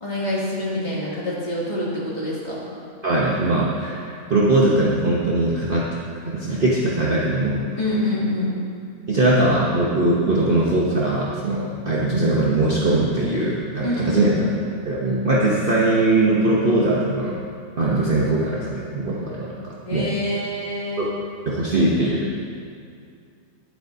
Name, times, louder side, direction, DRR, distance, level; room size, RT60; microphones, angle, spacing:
voice 1, 0.0-2.6 7.8-8.5 13.8-14.6 19.9-21.1, left 1 dB, 30° left, -8 dB, 2.8 m, -26 dB
voice 2, 3.0-5.9 6.2-7.7 9.1-14.5 14.8-17.4 17.8-20.1 21.0-21.1 21.5-22.3, right 2 dB, 40° right, -5 dB, 1.1 m, -21 dB
20.0 x 8.1 x 2.8 m, 2.3 s
omnidirectional pair, 1.5 m